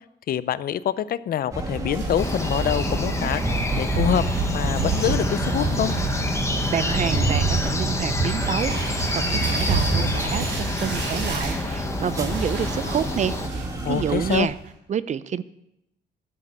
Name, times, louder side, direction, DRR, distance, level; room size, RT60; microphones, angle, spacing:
voice 1, 0.3-5.9 13.8-14.5, left 10 dB, 55° left, 17 dB, 0.5 m, -26 dB
sound 1, 1.5-14.4, right 1 dB, 15° right, 1.6 m, -29 dB
sound 2, 1.9-2.9 3.6-3.7 3.9-14.0 14.3-14.7, right 4 dB, 75° right, 5.9 m, -29 dB
sound 3, 2.2-13.5, left 2 dB, 15° left, 1.2 m, -29 dB
voice 2, 6.7-8.7 9.1-14.5 14.9-15.4, right 8 dB, 40° right, 16 dB, 0.5 m, -28 dB
12.0 x 6.7 x 8.5 m, 0.83 s
cardioid pair, 150°, 19 cm